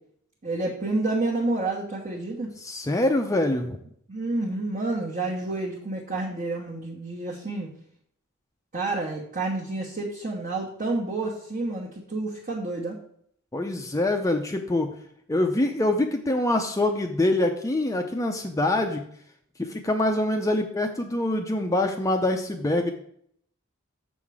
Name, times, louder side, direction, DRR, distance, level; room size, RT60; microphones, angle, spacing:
voice 1, 0.4-2.5 4.1-7.7 8.7-13.0, right 2 dB, 40° right, -5 dB, 1.2 m, -29 dB
voice 2, 2.6-3.8 13.5-14.9 15.3-19.0 19.6-22.9, left 1 dB, 15° left, 4 dB, 0.5 m, -25 dB
6.9 x 5.7 x 4.8 m, 0.66 s
head